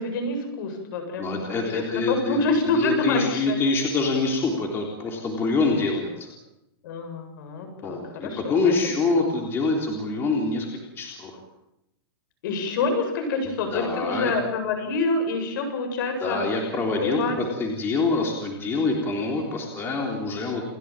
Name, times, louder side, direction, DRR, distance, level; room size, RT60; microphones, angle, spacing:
voice 1, 0.0-3.6 6.8-8.7 12.4-16.4 17.0-17.4, left 3 dB, 55° left, 5 dB, 7.9 m, -27 dB
voice 2, 1.2-2.4 2.8-6.3 7.8-11.4 13.7-14.3 16.2-20.6, left 3 dB, 15° left, 2 dB, 3.7 m, -25 dB
29.0 x 16.5 x 9.0 m, 0.85 s
supercardioid pair, 165°, 13 cm